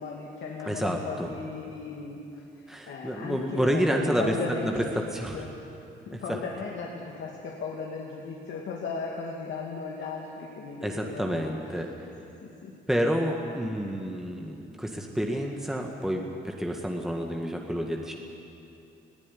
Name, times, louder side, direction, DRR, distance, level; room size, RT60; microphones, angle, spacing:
voice 1, 0.0-5.1 5.3-5.5 6.1-11.5 12.4-12.7, left 4 dB, 70° left, -2 dB, 2.4 m, -37 dB
voice 2, 0.7-1.3 2.7-4.3 4.6-4.8 5.1-5.4 6.1-6.4 10.8-11.9 12.9-18.1, equal, ahead, 1 dB, 1.8 m, -29 dB
19.5 x 15.5 x 10.0 m, 2.7 s
cardioid pair, 90°, 20 cm